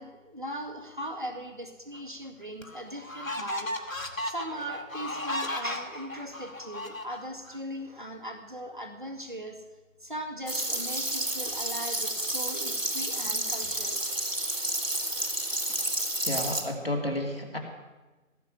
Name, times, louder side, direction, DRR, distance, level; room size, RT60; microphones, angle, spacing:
voice 1, 0.0-4.0 4.3-9.6 10.0-14.0, right 1 dB, 35° right, 3 dB, 2.0 m, -39 dB
sound 1, 1.9-2.0 2.6-7.6, left 1 dB, 75° left, 2.2 m, -35 dB
sound 2, 10.5-16.6, right 1 dB, 65° right, 2.9 m, -30 dB
voice 2, 16.2-17.6, left 1 dB, 45° left, 1 dB, 2.6 m, -31 dB
17.5 x 7.3 x 9.1 m, 1.2 s
figure-of-eight pair, 180°, 41 cm